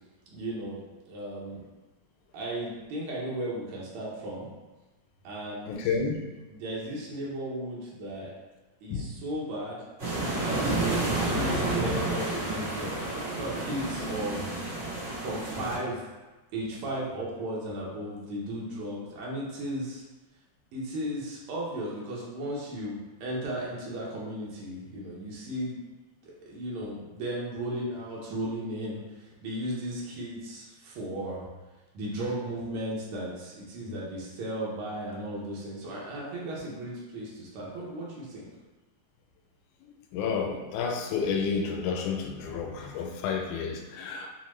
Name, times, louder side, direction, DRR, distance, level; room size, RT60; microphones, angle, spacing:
voice 1, 0.3-0.8 1.1-1.7 2.3-4.5 5.2-6.0 6.5-8.3 8.8-9.8 10.3-14.5 15.2-16.0 16.5-20.0 20.7-25.8 26.2-31.5 31.9-38.5, right 1 dB, 90° right, -5 dB, 1.2 m, -35 dB
voice 2, 5.7-6.2 8.9-9.1 40.1-44.3, left 5 dB, 80° left, 2 dB, 1.9 m, -30 dB
sound 1, 10.0-15.8, right 2 dB, 40° right, 0.8 m, -30 dB
4.7 x 2.1 x 3.1 m, 1.1 s
omnidirectional pair, 3.5 m